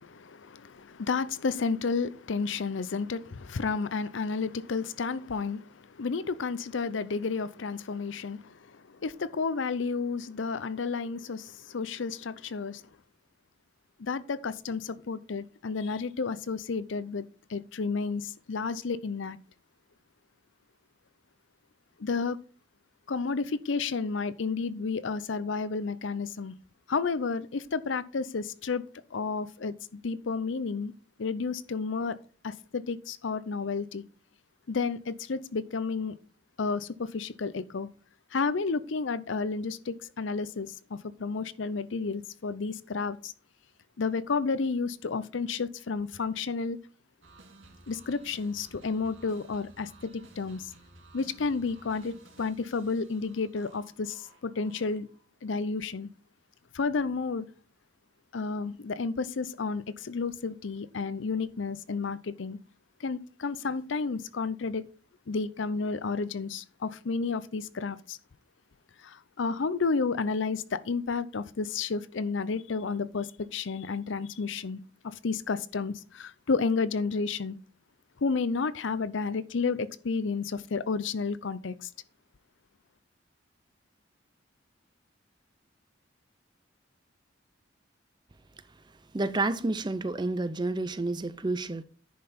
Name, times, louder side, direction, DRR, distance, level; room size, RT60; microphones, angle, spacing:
voice 1, 0.0-12.8 14.0-17.2 17.5-19.4 22.0-22.4 23.1-26.5 26.9-28.8 29.1-30.9 31.2-32.2 32.4-34.0 34.7-36.2 36.6-37.9 38.3-43.3 44.0-46.8 47.9-50.1 50.4-50.7 51.1-55.1 55.4-56.1 56.7-57.5 58.3-62.6 63.0-64.8 65.3-68.2 69.0-77.6 78.2-81.9, left 4 dB, 75° left, 0.6 m, -31 dB
sound 1, 47.2-55.3, right 2 dB, 80° right, 2.1 m, -55 dB
voice 2, 89.1-91.8, right 2 dB, 20° right, 0.5 m, -29 dB
10.5 x 5.7 x 4.2 m
head